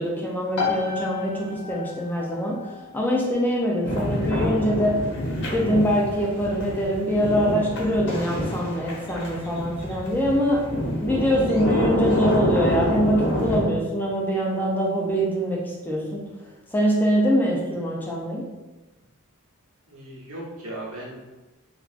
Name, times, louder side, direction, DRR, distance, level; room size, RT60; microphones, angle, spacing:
voice 1, 0.0-2.6 2.9-5.0 5.5-10.7 11.0-16.2 16.7-18.4, equal, 10° left, -3 dB, 0.4 m, -24 dB
sound 1, 0.6-15.1, left 5 dB, 80° left, 0.5 m, -38 dB
sound 2, 3.8-13.6, left 1 dB, 55° left, 0.9 m, -27 dB
voice 2, 19.9-21.2, right 1 dB, 75° right, -5 dB, 1.0 m, -37 dB
3.3 x 2.4 x 2.4 m, 1.1 s
head